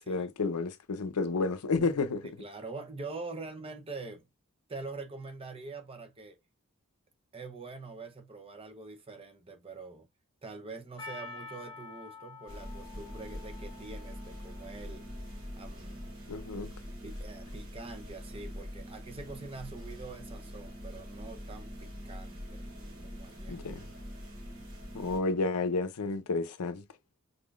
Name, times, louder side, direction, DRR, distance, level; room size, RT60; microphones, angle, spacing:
voice 1, 0.1-2.3 16.3-16.7 23.5-23.8 24.9-26.8, left 3 dB, 85° left, 0.6 m, -31 dB
voice 2, 2.2-4.3 4.7-6.4 7.3-10.1 10.4-15.1 15.5-16.0 17.0-22.7 23.0-23.6, right 3 dB, 25° right, 0.7 m, -44 dB
Percussion, 11.0-15.5, left 4 dB, 20° left, 1.1 m, -48 dB
sound 1, 12.5-25.2, equal, 70° right, 3.4 m, -44 dB
5.1 x 3.7 x 2.4 m
head